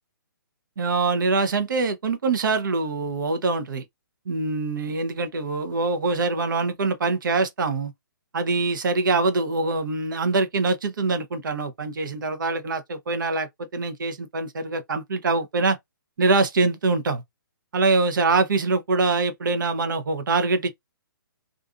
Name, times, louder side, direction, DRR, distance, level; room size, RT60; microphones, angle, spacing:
voice 1, 0.8-3.8 4.3-7.9 8.3-15.8 16.2-17.2 17.7-20.7, right 3 dB, 60° right, 0.8 m, -24 dB
2.5 x 2.5 x 2.4 m
figure-of-eight pair, 135°, 12 cm